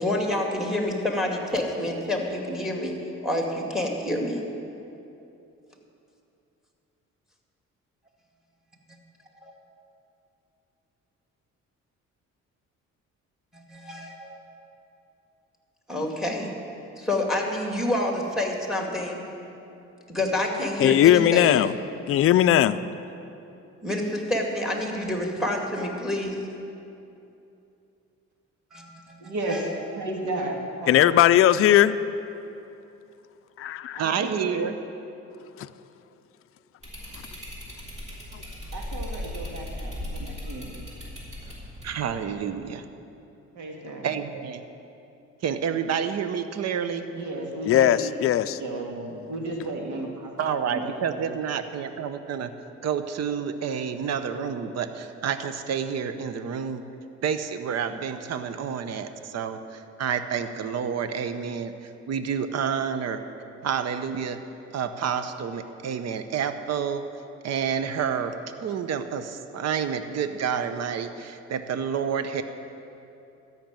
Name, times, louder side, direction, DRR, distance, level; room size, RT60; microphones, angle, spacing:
voice 1, 0.0-2.9 3.2-4.4 13.9-14.1 15.9-16.5 17.1-19.2 20.1-21.6 23.8-26.3 28.7-28.8 29.5-29.6, left 1 dB, ahead, 1 dB, 2.1 m, -27 dB
voice 2, 20.8-21.7 22.1-22.8 30.9-32.0 33.6-34.0 47.7-48.6, left 12 dB, 50° left, 11 dB, 0.4 m, -18 dB
voice 3, 29.2-29.7 30.0-31.4 33.9-34.6 38.7-40.7 43.5-44.1 47.1-48.1 48.5-50.3 50.6-51.3, right 2 dB, 75° right, 0 dB, 2.1 m, -34 dB
voice 4, 34.0-34.7 41.8-42.8 44.0-44.6 45.4-47.0 50.4-52.5 52.8-56.8 57.2-63.2 63.6-64.4 64.7-67.0 67.4-68.4 68.6-72.4, right 7 dB, 60° right, 10 dB, 0.8 m, -29 dB
sound 1, 36.8-42.2, left 1 dB, 20° right, 3.6 m, -37 dB
13.5 x 6.0 x 8.9 m, 2.8 s
cardioid pair, 90°, 30 cm